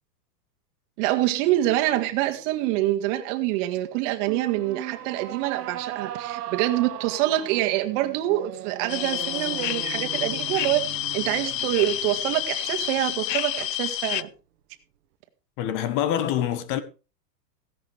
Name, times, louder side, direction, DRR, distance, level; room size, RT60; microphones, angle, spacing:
voice 1, 1.0-10.9 11.1-14.3, right 15 dB, 45° right, 1.9 m, -25 dB
sound 1, 4.2-13.6, right 13 dB, 65° right, 1.4 m, -38 dB
sound 2, 8.9-14.2, left 13 dB, 80° left, 0.8 m, -29 dB
voice 2, 15.6-16.8, left 10 dB, 40° left, 1.4 m, -25 dB
16.0 x 11.0 x 3.4 m
hypercardioid pair, 130°, 49 cm